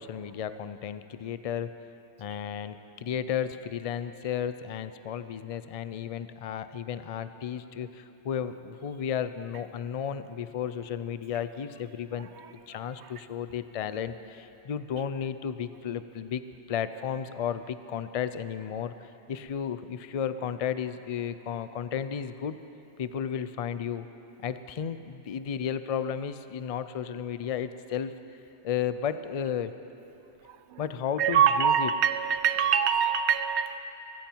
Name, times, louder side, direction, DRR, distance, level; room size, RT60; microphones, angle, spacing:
voice 1, 0.0-1.7 2.2-12.3 12.7-22.6 23.0-24.1 24.4-28.2 28.6-29.7 30.8-31.9, left 8 dB, 50° left, 12 dB, 0.4 m, -33 dB
voice 2, 31.2-33.8, right 8 dB, 75° right, 11 dB, 0.9 m, -24 dB
22.0 x 14.5 x 4.5 m, 2.9 s
omnidirectional pair, 1.2 m